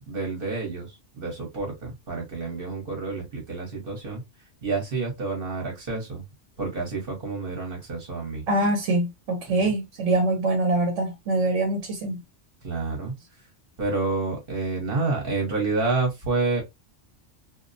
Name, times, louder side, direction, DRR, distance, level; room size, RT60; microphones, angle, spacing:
voice 1, 0.1-4.2 4.6-6.2 6.6-8.4 12.6-13.1 13.8-16.6, right 3 dB, 50° right, 1.0 m, -29 dB
voice 2, 8.5-12.2, right 2 dB, 80° right, 1.0 m, -24 dB
2.5 x 2.0 x 2.5 m
omnidirectional pair, 1.2 m